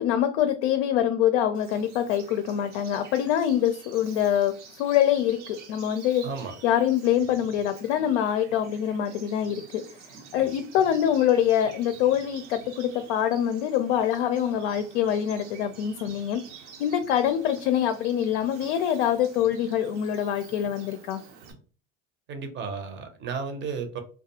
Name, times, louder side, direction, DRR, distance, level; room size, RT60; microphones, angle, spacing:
voice 1, 0.0-6.2 6.6-9.8 10.3-16.4 16.8-21.2, left 10 dB, 65° left, 8 dB, 0.5 m, -25 dB
Bird vocalization bird call bird song, 1.5-21.5, right 6 dB, 80° right, 0.8 m, -49 dB
voice 2, 6.2-6.5 22.3-24.0, right 5 dB, 30° right, 7 dB, 0.6 m, -33 dB
2.3 x 2.2 x 2.8 m, 0.38 s
hypercardioid pair, 105°, 35 cm